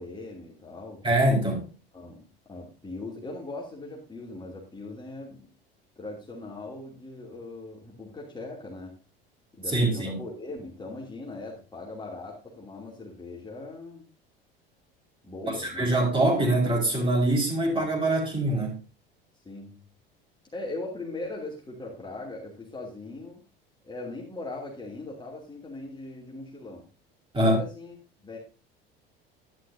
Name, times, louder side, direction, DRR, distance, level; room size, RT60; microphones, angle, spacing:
voice 1, 0.0-1.0 1.9-5.5 6.0-9.0 9.5-14.1 15.2-15.9 19.4-19.8 20.5-23.4 23.8-26.9 27.4-28.0 28.2-28.4, left 2 dB, 15° left, 2.8 m, -40 dB
voice 2, 1.0-1.7 9.7-10.2 15.4-18.7 27.3-27.6, right 1 dB, 15° right, 4.7 m, -24 dB
11.0 x 11.0 x 2.7 m
figure-of-eight pair, 70°, 30 cm